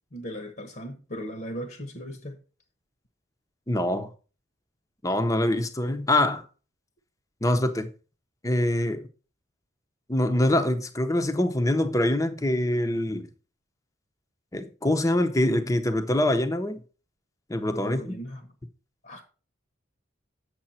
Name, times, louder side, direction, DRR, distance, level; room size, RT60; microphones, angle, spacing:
voice 1, 0.1-2.4 17.8-18.4 19.0-19.2, equal, 50° left, 1.2 m, -37 dB
voice 2, 3.7-4.1 5.0-6.4 7.4-7.9 8.4-9.0 10.1-13.3 14.5-16.8 17.5-18.2, left 1 dB, 15° left, 0.8 m, -24 dB
8.9 x 7.1 x 4.3 m
head